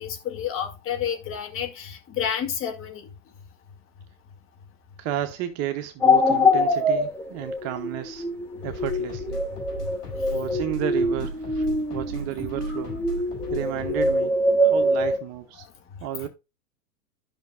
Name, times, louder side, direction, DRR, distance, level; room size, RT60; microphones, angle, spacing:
voice 1, 0.0-3.1 16.2-16.3, left 8 dB, 25° left, 2.0 m, -30 dB
voice 2, 5.0-8.2 8.6-9.4 10.3-13.0 13.5-14.3 14.6-15.6 16.0-16.3, right 12 dB, 30° right, 0.9 m, -32 dB
sound 1, 6.0-15.2, left 1 dB, 5° left, 2.0 m, -24 dB
sound 2, 8.6-14.3, right 1 dB, 80° left, 4.7 m, -37 dB
12.5 x 5.8 x 2.3 m
hypercardioid pair, 115°, 47 cm